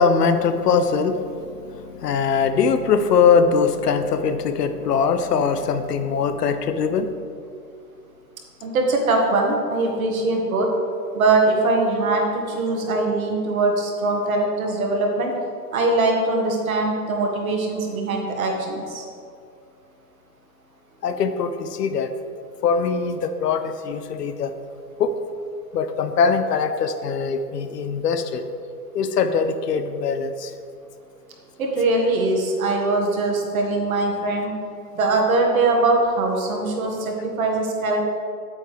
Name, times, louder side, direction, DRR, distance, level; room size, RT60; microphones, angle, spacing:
voice 1, 0.0-7.1 21.0-22.1 22.6-24.5 25.0-25.1 25.7-28.4 28.9-30.5, left 5 dB, 70° left, 9 dB, 0.8 m, -21 dB
voice 2, 8.6-10.7 11.1-15.3 15.7-19.0 31.6-34.5 34.9-38.0, right 2 dB, 55° right, 1 dB, 1.6 m, -22 dB
8.7 x 8.0 x 3.4 m, 2.4 s
hypercardioid pair, 170°, 50 cm